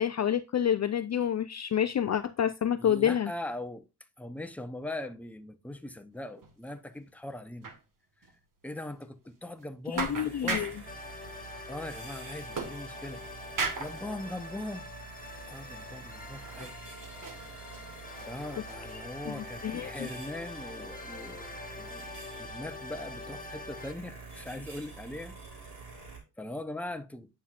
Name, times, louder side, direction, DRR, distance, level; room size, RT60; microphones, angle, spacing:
voice 1, 0.0-3.3 9.9-10.7 19.3-20.1, left 9 dB, 45° left, 0.4 m, -28 dB
voice 2, 2.8-3.9 4.2-7.7 8.6-10.7 11.7-13.2 13.8-14.9 15.5-16.7 18.3-21.5 21.7-25.6 26.4-27.3, left 1 dB, 5° left, 0.8 m, -40 dB
sound 1, 6.4-6.8 7.0-7.1 7.6-7.8 8.2-8.3 8.8-8.9 9.6-9.7 10.0-10.9 12.5-13.2 13.6-14.0 14.7-14.9 15.4-15.5 16.3-16.8 17.0-18.3 18.7-19.0, right 4 dB, 50° right, 1.6 m, -36 dB
sound 2, 9.9-26.2, right 4 dB, 75° right, 3.7 m, -47 dB
sound 3, 10.8-23.9, left 3 dB, 20° left, 1.5 m, -45 dB
9.3 x 5.8 x 2.5 m
cardioid pair, 80°, 41 cm